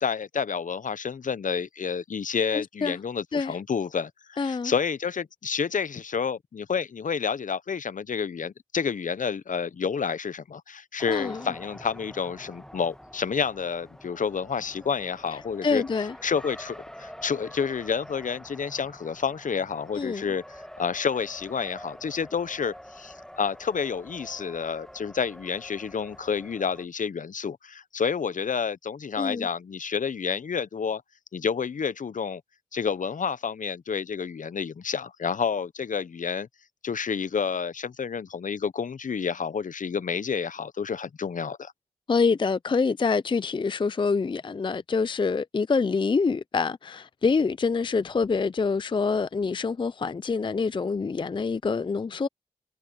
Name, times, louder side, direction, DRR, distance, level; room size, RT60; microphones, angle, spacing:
voice 1, 0.0-15.8 16.2-31.0 31.3-32.4 32.7-36.5 36.8-41.7, left 6 dB, 55° left, 0.8 m, -29 dB
voice 2, 2.5-3.0 3.3-3.6 4.4-4.7 11.1-11.4 15.6-16.1 20.0-20.3 29.2-29.5 42.1-52.3, left 4 dB, 30° left, 0.4 m, -26 dB
Race car auto racing, 11.0-26.9, equal, 5° left, 1.4 m, -46 dB
cardioid pair, 45°, 16 cm